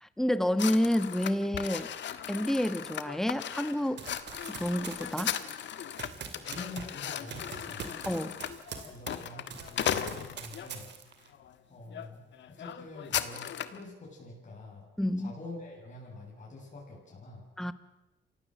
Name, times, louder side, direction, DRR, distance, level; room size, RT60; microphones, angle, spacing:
voice 1, 0.0-1.9 2.3-4.0 4.6-5.4 8.1-8.3 15.0-15.3 17.6-17.7, left 1 dB, ahead, 12 dB, 1.2 m, -29 dB
sound 1, 0.6-10.7 11.3-11.5 11.9-12.1 12.3-13.8, left 9 dB, 65° left, 1.5 m, -37 dB
Run, 4.0-9.2 9.5-11.3, right 6 dB, 60° right, 2.8 m, -44 dB
voice 2, 6.4-7.9 8.9-10.9 11.7-14.9 15.2-17.5, left 2 dB, 40° left, -3 dB, 7.8 m, -46 dB
28.0 x 16.0 x 7.6 m, 0.97 s
cardioid pair, 90°, 20 cm